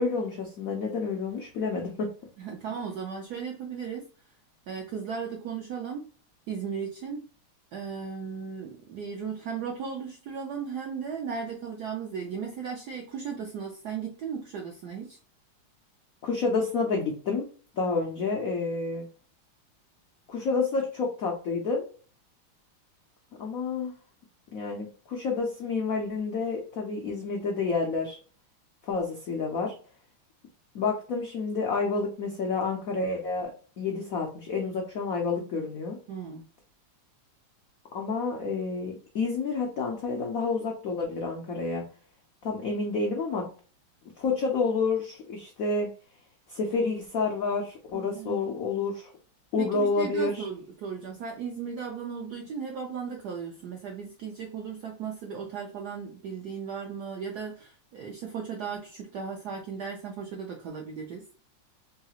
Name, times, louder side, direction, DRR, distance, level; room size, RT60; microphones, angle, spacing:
voice 1, 0.0-2.1 16.2-17.5 17.7-19.1 20.3-21.8 23.4-23.9 24.5-28.2 28.8-29.7 30.7-33.5 33.8-36.0 37.9-41.8 42.4-43.5 44.2-45.9 46.5-49.1 49.5-50.4, left 4 dB, 85° left, 0 dB, 0.7 m, -29 dB
voice 2, 2.4-4.1 4.7-6.1 6.5-7.3 7.7-15.2 36.1-36.4 47.9-48.5 49.6-61.2, right 6 dB, 80° right, 1 dB, 0.9 m, -36 dB
3.7 x 2.4 x 2.8 m, 0.39 s
omnidirectional pair, 2.4 m